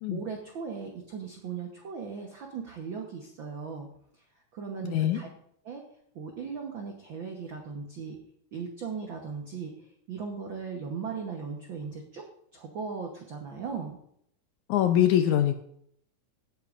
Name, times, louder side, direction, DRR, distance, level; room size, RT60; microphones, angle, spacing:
voice 1, 0.1-3.9 4.5-5.3 5.6-5.8 6.1-8.2 8.5-9.8 10.1-12.3 12.5-14.0, right 5 dB, 75° right, 2 dB, 1.1 m, -37 dB
voice 2, 4.8-5.2 14.7-15.6, left 11 dB, 75° left, 7 dB, 1.8 m, -23 dB
17.5 x 8.5 x 2.5 m, 0.69 s
omnidirectional pair, 3.9 m